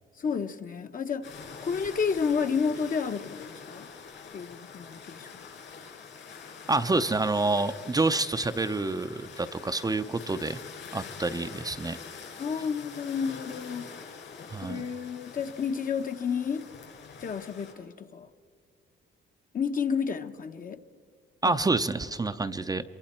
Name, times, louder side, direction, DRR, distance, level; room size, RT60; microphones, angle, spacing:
voice 1, 0.2-3.9 4.3-5.3 12.4-13.9 14.6-16.7 17.2-18.3 19.5-20.8 21.4-21.6, left 6 dB, 45° left, 7 dB, 1.0 m, -31 dB
sound 1, 1.2-17.7, left 6 dB, 70° left, 5.3 m, -45 dB
voice 2, 6.7-10.6 10.9-12.0 14.5-14.8 21.4-22.8, right 3 dB, 20° right, 9 dB, 0.6 m, -28 dB
26.5 x 23.5 x 4.4 m, 2.4 s
cardioid pair, 90°, 20 cm